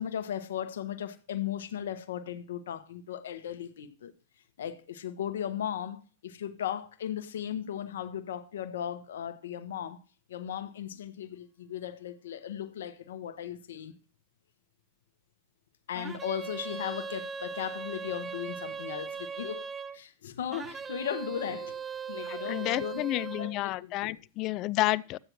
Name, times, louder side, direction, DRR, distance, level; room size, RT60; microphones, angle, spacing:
voice 1, 0.0-4.1 4.6-10.0 10.3-13.9 15.9-19.7 19.9-21.8 22.1-24.2, left 9 dB, 60° left, 1.1 m, -37 dB
sound 1, 15.9-20.0 20.5-23.5, right 6 dB, 20° right, 0.6 m, -39 dB
voice 2, 22.3-25.2, left 17 dB, 40° left, 0.4 m, -30 dB
14.5 x 8.8 x 3.0 m
figure-of-eight pair, 90°, 0 cm